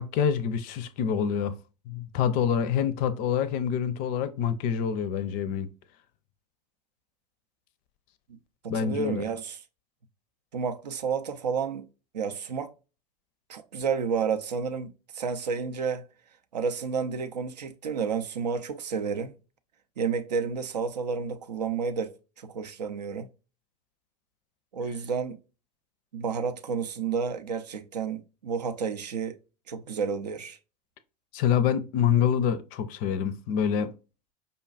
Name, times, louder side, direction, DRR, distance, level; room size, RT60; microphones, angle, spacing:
voice 1, 0.0-1.6 1.9-5.7 8.7-9.2 31.3-33.9, left 8 dB, 40° left, 0.4 m, -26 dB
voice 2, 8.6-9.6 10.5-11.9 12.1-12.7 13.5-16.0 16.5-19.3 20.0-23.3 24.7-25.4 26.1-29.4 29.7-30.6, right 6 dB, 75° right, 0.5 m, -31 dB
5.1 x 2.3 x 2.3 m
figure-of-eight pair, 85°, 21 cm